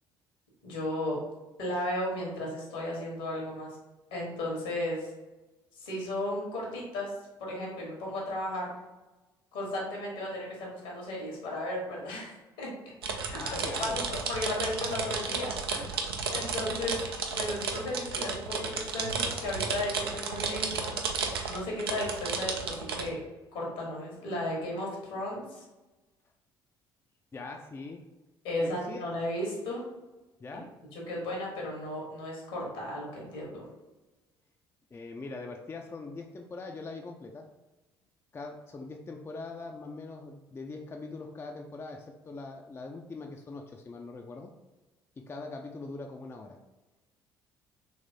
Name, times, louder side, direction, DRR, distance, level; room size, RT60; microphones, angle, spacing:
voice 1, 0.6-1.2 1.6-3.8 4.1-5.1 5.8-7.1 7.4-8.7 9.5-12.7 13.2-14.0 14.3-17.0 17.3-20.9 21.5-23.2 23.5-25.6 28.4-29.8 30.9-33.7, left 1 dB, 70° left, -2 dB, 1.2 m, -35 dB
sound 1, 13.0-23.1, right 5 dB, 80° right, 0.4 m, -33 dB
voice 2, 13.3-14.0 27.3-28.1 28.6-29.1 30.4-30.7 34.9-37.5 38.3-44.5 45.2-46.6, left 3 dB, 20° left, 3 dB, 0.4 m, -42 dB
3.2 x 3.2 x 2.6 m, 1.1 s
figure-of-eight pair, 50°, 12 cm